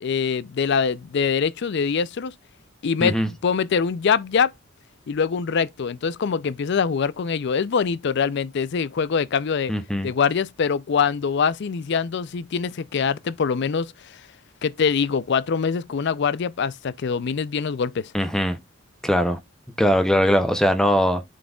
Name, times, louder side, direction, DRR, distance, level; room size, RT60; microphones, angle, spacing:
voice 1, 0.0-2.3 2.8-4.5 5.1-9.7 10.0-14.2 14.6-18.1, left 6 dB, 60° left, 0.4 m, -24 dB
voice 2, 9.7-10.1 18.1-18.6 19.0-19.4 19.8-21.3, equal, 5° left, 0.6 m, -20 dB
11.0 x 3.9 x 2.3 m
head